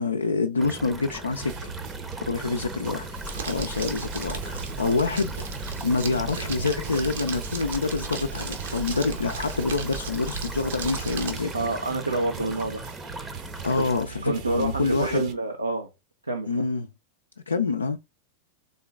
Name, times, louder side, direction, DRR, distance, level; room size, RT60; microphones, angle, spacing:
voice 1, 0.0-1.7 2.3-11.5 13.6-15.2 16.5-16.9 17.5-18.0, left 4 dB, 75° left, 0.4 m, -27 dB
sound 1, 0.6-14.0, right 2 dB, 10° right, 0.8 m, -39 dB
sound 2, 1.4-15.3, right 5 dB, 45° right, 0.9 m, -41 dB
Crumpling crinkling, 3.2-11.3, right 4 dB, 65° right, 1.2 m, -36 dB
voice 2, 11.5-13.3 13.7-13.9 14.2-15.9 16.2-16.7, right 2 dB, 80° right, 0.8 m, -28 dB
4.0 x 3.7 x 3.6 m
figure-of-eight pair, 90°, 0 cm